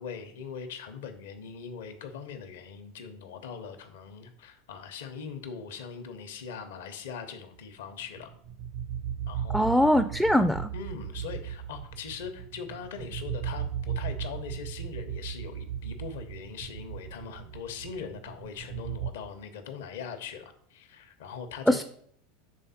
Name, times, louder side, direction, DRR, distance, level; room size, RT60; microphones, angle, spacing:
voice 1, 0.0-8.3 9.3-9.7 10.7-21.8, left 6 dB, 70° left, 7 dB, 0.8 m, -41 dB
sound 1, 8.0-19.1, right 9 dB, 65° right, 0.5 m, -36 dB
voice 2, 9.5-10.7 21.7-21.8, equal, ahead, 11 dB, 0.3 m, -22 dB
6.5 x 3.6 x 4.1 m, 0.63 s
hypercardioid pair, 85°, 0 cm